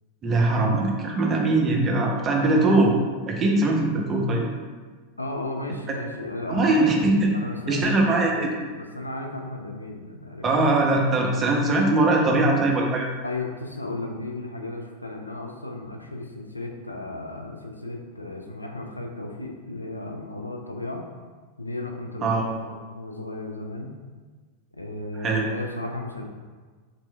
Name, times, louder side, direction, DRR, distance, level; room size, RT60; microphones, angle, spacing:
voice 1, 0.2-2.9 3.3-4.5 6.5-7.3 7.7-8.5 10.4-13.1 22.2-22.5 25.2-25.5, right 2 dB, 25° right, 0 dB, 0.6 m, -21 dB
voice 2, 5.2-6.9 7.3-10.4 13.2-21.0 21.6-23.9 24.8-26.3, left 2 dB, 85° left, 2 dB, 0.4 m, -34 dB
3.9 x 3.1 x 2.2 m, 1.4 s
figure-of-eight pair, 90°, 0 cm